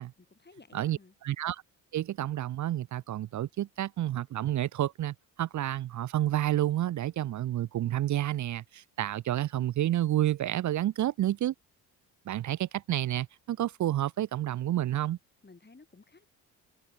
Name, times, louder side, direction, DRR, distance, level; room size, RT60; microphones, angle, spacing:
voice 1, 0.3-1.1 15.4-16.3, left 3 dB, 20° left, 7.1 m, -54 dB
voice 2, 1.2-1.6 1.9-11.5 12.3-15.2, right 13 dB, 40° right, 0.7 m, -30 dB
hypercardioid pair, 50°, 45 cm